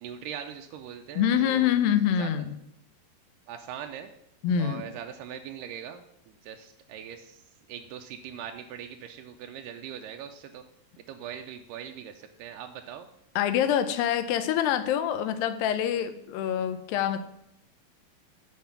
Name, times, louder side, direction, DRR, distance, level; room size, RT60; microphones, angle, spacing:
voice 1, 0.0-1.7 2.2-2.3 3.5-4.1 4.6-7.4 7.7-10.6 11.0-13.1, right 9 dB, 90° right, 5 dB, 1.9 m, -41 dB
voice 2, 1.2-2.6 4.4-4.8 13.4-17.2, left 9 dB, 80° left, 11 dB, 2.3 m, -25 dB
7.9 x 5.2 x 6.9 m, 0.78 s
omnidirectional pair, 4.4 m